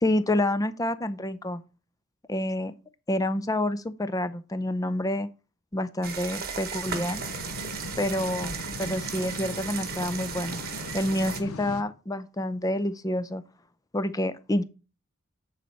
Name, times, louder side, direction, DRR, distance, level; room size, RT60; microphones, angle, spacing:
voice 1, 0.0-1.6 2.3-2.7 3.1-5.3 5.7-7.2 8.0-10.6 10.9-13.4 13.9-14.6, left 1 dB, 15° left, 0.5 m, -28 dB
sound 1, 6.0-11.4, right 6 dB, 45° right, 1.1 m, -36 dB
sound 2, 6.8-11.8, left 3 dB, 80° left, 0.7 m, -39 dB
9.7 x 4.1 x 4.3 m
head